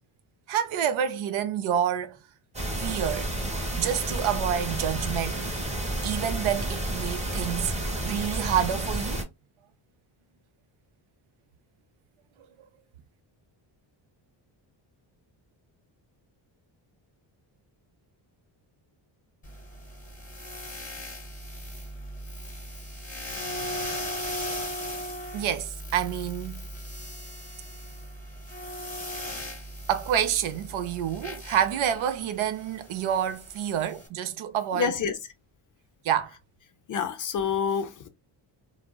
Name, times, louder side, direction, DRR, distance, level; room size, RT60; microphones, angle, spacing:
voice 1, 0.5-2.2 2.8-3.3 3.8-5.4 6.0-7.7 8.0-9.2 25.3-26.7 29.9-34.9 36.0-36.4, right 9 dB, 75° right, 0.6 m, -28 dB
sound 1, 2.5-9.2, right 1 dB, 15° right, 0.8 m, -31 dB
sound 2, 19.4-34.1, equal, 15° left, 1.0 m, -38 dB
voice 2, 34.7-35.2 36.9-38.1, left 6 dB, 45° left, 0.4 m, -27 dB
3.5 x 2.0 x 2.2 m
cardioid pair, 120°, 49 cm